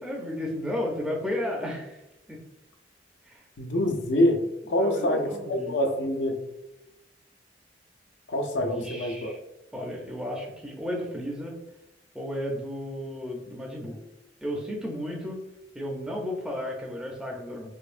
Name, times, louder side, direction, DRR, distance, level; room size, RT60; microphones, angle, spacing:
voice 1, 0.0-2.0 2.3-2.4 3.2-3.4 4.7-5.8 8.7-9.4 9.7-11.5 12.1-14.0 14.4-15.4 15.7-17.7, left 1 dB, 5° right, -2 dB, 0.5 m, -33 dB
voice 2, 3.6-4.4 4.7-6.4 8.3-9.3, left 1 dB, 80° left, 4 dB, 0.6 m, -25 dB
4.4 x 2.7 x 2.5 m, 0.94 s
head